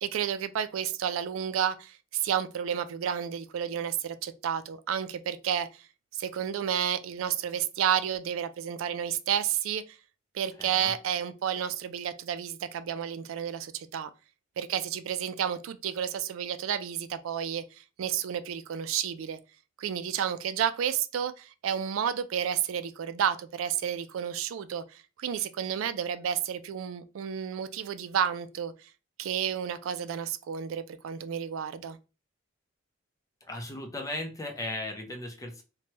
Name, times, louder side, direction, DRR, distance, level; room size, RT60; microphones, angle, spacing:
voice 1, 0.0-5.8 6.1-10.0 10.3-14.1 14.6-17.6 18.0-19.4 19.8-28.7 29.2-32.0, right 9 dB, 80° right, 0.3 m, -31 dB
voice 2, 10.6-10.9 33.4-35.6, left 2 dB, 15° left, 0.4 m, -37 dB
3.0 x 2.2 x 2.8 m
head